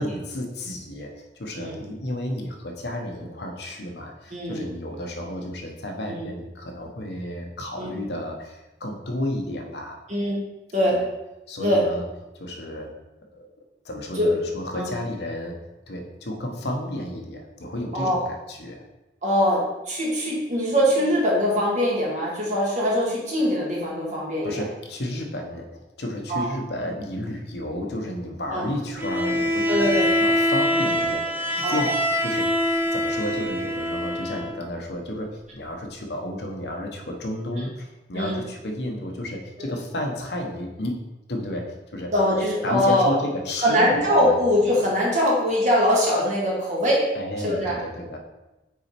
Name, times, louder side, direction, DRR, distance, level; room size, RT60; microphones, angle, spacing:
voice 1, 0.0-10.0 10.9-11.0 11.5-12.0 12.3-12.9 13.3-13.5 13.8-15.6 15.9-18.8 24.4-32.5 32.9-41.0 41.3-42.1 42.6-43.9 44.2-44.4 47.1-48.2, left 1 dB, 70° left, 2 dB, 1.0 m, -32 dB
voice 2, 4.3-4.6 6.1-6.3 7.8-8.0 10.1-10.4 10.7-11.0 11.6-11.8 14.2-14.3 14.7-14.9 17.9-18.2 19.2-24.6 26.3-26.5 28.5-28.6 29.7-30.1 31.6-31.8 38.1-38.4 39.6-39.7 42.1-43.1 43.6-47.1 47.4-47.8, equal, 45° right, -4 dB, 1.8 m, -22 dB
Bowed string instrument, 29.0-34.6, left 1 dB, 10° right, 0.4 m, -24 dB
6.2 x 4.2 x 4.4 m, 1.0 s
head